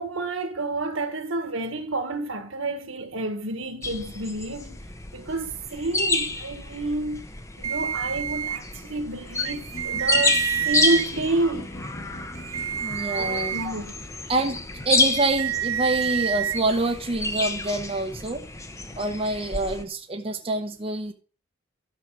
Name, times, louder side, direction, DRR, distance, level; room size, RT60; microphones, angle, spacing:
voice 1, 0.0-4.8 5.1-7.2 7.6-11.7 13.1-13.9, right 2 dB, 65° right, 1.6 m, -29 dB
sound 1, 3.8-19.8, left 3 dB, 15° left, 0.9 m, -30 dB
sound 2, 7.6-8.6 9.4-11.1 12.4-13.7 15.0-16.6, right 9 dB, 85° right, 0.5 m, -28 dB
sound 3, 9.7-19.8, equal, 45° left, 2.0 m, -45 dB
voice 2, 12.8-13.7 14.3-14.6 14.8-18.4 19.0-21.1, right 2 dB, 25° right, 0.9 m, -26 dB
12.5 x 6.5 x 4.8 m
head